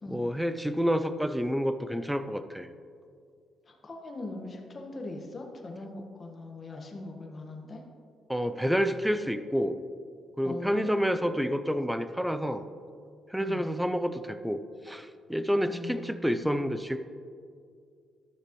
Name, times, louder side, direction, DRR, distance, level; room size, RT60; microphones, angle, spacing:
voice 1, 0.1-2.7 8.3-9.8 10.4-12.6 13.3-14.6 14.9-17.0, equal, 5° right, 10 dB, 0.5 m, -29 dB
voice 2, 3.7-7.8 10.4-11.3 13.4-13.7 15.7-16.6, left 2 dB, 35° left, 1 dB, 1.4 m, -41 dB
12.5 x 6.6 x 3.1 m, 2.2 s
cardioid pair, 90°, 0 cm